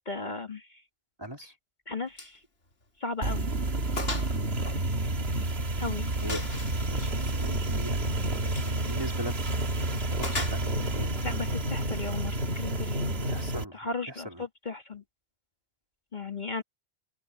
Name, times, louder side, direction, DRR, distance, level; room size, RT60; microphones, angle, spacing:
voice 1, 0.1-0.8 1.9-2.4 3.0-3.5 5.8-6.1 11.2-15.0 16.1-16.6, left 3 dB, 45° left, 2.2 m, -36 dB
voice 2, 1.2-1.5 4.3-4.5 6.2-6.4 6.9-9.3 10.2-11.2 13.2-13.8 14.1-14.4, equal, 20° right, 3.2 m, -40 dB
Gunshot gunfire, 2.2-2.4 2.7-2.8 3.3-3.4 4.0-4.3 4.7-5.6 6.3-6.8 8.4-8.8 10.2-11.0, left 2 dB, 65° left, 3.1 m, -36 dB
sound 1, 3.2-13.6, right 1 dB, 65° right, 2.3 m, -30 dB
open air
omnidirectional pair, 1.1 m